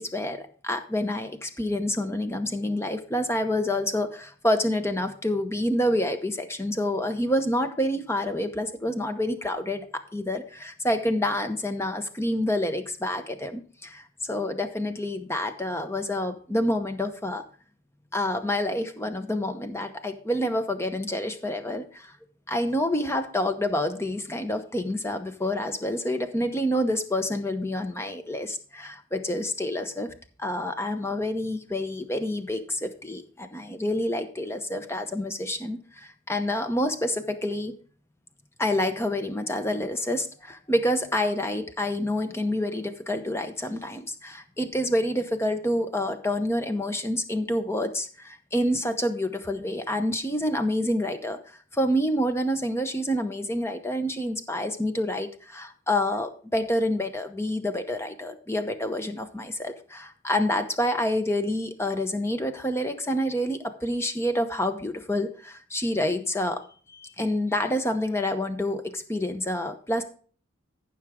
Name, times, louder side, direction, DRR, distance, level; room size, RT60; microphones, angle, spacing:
voice 1, 0.0-17.4 18.1-22.1 22.5-30.1 30.4-37.7 38.6-51.4 51.7-66.6 66.9-70.0, left 1 dB, 15° left, 8 dB, 0.8 m, -28 dB
14.5 x 5.9 x 3.6 m, 0.43 s
head